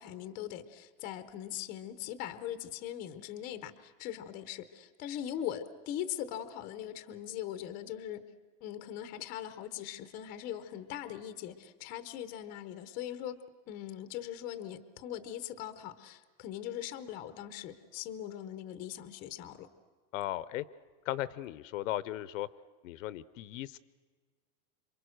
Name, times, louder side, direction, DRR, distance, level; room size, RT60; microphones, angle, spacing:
voice 1, 0.0-8.2 8.6-13.4 13.7-19.7, left 11 dB, 20° left, 11 dB, 0.6 m, -41 dB
voice 2, 20.1-20.6 21.1-22.5 22.8-23.8, left 14 dB, 55° left, 18 dB, 0.7 m, -36 dB
27.5 x 24.0 x 6.4 m, 1.5 s
supercardioid pair, 175°, 47 cm